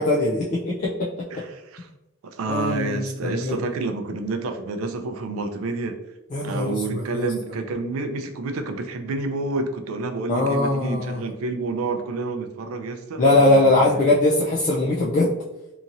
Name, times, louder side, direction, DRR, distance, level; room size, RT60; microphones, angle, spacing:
voice 1, 0.0-1.3 2.5-3.6 6.3-7.3 10.3-11.2 13.2-15.3, left 2 dB, 35° left, -3 dB, 0.4 m, -21 dB
voice 2, 1.3-1.9 2.2-6.0 6.4-14.1, right 3 dB, 85° right, 7 dB, 0.4 m, -29 dB
2.8 x 2.7 x 2.5 m, 0.95 s
head